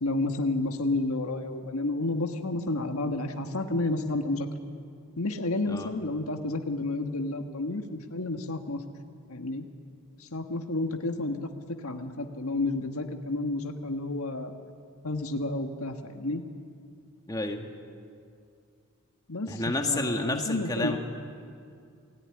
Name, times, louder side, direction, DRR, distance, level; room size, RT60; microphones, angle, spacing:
voice 1, 0.0-4.5 5.2-8.8 9.3-9.6 10.2-11.4 11.8-14.5 15.0-16.4 19.3-21.0, left 2 dB, 80° left, 5 dB, 1.6 m, -30 dB
voice 2, 17.3-17.7 19.5-21.0, left 2 dB, 15° left, 3 dB, 1.9 m, -30 dB
28.5 x 18.5 x 9.8 m, 2.3 s
head